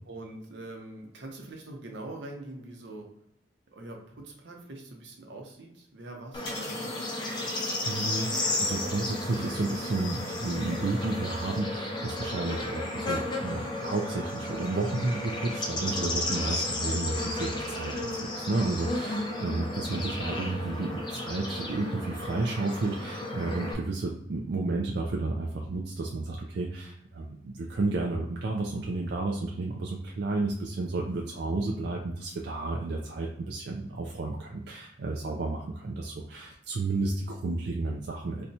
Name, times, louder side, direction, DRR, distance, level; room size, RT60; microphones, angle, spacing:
voice 1, 0.1-3.1 3.7-6.9 19.3-19.5, right 2 dB, 85° right, 1 dB, 0.8 m, -43 dB
Bird / Insect, 6.3-23.7, left 2 dB, 25° left, 0.5 m, -33 dB
sound 1, 6.4-11.6, left 2 dB, 75° left, 1.0 m, -44 dB
voice 2, 7.8-38.5, right 2 dB, 65° right, -1 dB, 0.4 m, -32 dB
4.1 x 2.2 x 2.7 m, 0.76 s
head